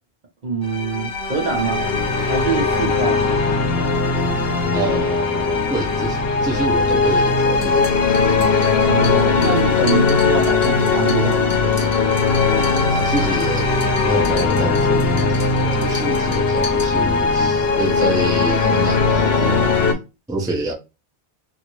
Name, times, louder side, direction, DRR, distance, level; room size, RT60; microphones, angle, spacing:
voice 1, 0.4-1.9 2.3-3.2 8.7-12.0, right 4 dB, 45° right, 0.9 m, -24 dB
sound 1, 0.6-19.9, left 4 dB, 60° left, 0.9 m, -19 dB
voice 2, 4.7-7.9 12.9-13.7 14.1-19.9 20.3-20.7, right 2 dB, 5° right, 0.5 m, -27 dB
sound 2, 7.4-17.4, left 4 dB, 35° left, 0.9 m, -37 dB
2.8 x 2.6 x 2.9 m
omnidirectional pair, 1.2 m